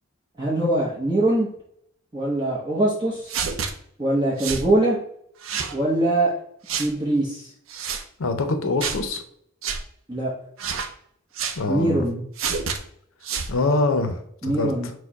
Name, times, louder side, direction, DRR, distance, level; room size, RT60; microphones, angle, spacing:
voice 1, 0.4-1.5 2.1-3.4 4.0-5.0 5.7-6.3 6.8-7.5 10.1-10.3 11.7-12.2 14.4-14.9, right 1 dB, 20° right, -5 dB, 0.8 m, -22 dB
sound 1, 3.3-3.7 4.4-4.7 5.4-5.7 6.7-6.9 7.7-8.0 8.8-9.0 9.6-9.8 10.6-10.9 11.3-11.6 12.4-12.8 13.2-13.5, right 6 dB, 75° right, 0.5 m, -28 dB
voice 2, 8.2-9.2 11.6-12.0 13.5-14.7, left 2 dB, 75° left, 8 dB, 0.6 m, -24 dB
4.4 x 2.2 x 4.6 m, 0.68 s
head